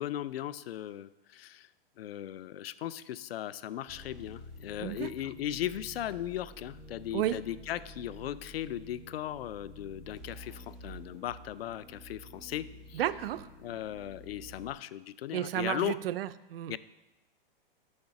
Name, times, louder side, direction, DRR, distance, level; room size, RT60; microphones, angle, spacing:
voice 1, 0.0-1.7 2.0-13.0 13.6-16.0 16.7-16.8, left 12 dB, 90° left, 17 dB, 0.5 m, -37 dB
sound 1, 3.9-14.7, equal, ahead, 1.0 m, -50 dB
voice 2, 12.9-13.5 15.3-16.8, right 12 dB, 75° right, 14 dB, 0.5 m, -32 dB
6.5 x 5.7 x 7.0 m, 1.0 s
hypercardioid pair, 155°, 29 cm